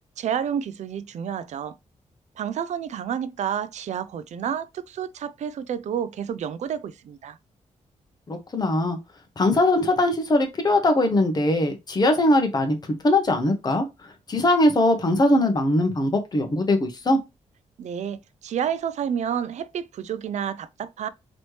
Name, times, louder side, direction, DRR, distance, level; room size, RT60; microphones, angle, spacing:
voice 1, 0.2-1.8 2.4-7.4 17.8-21.1, right 8 dB, 65° right, 0.4 m, -30 dB
voice 2, 8.3-9.0 9.4-12.8 13.0-13.9 14.3-17.2, left 1 dB, 30° left, 1.0 m, -21 dB
4.1 x 3.0 x 3.2 m
cardioid pair, 105°, 13 cm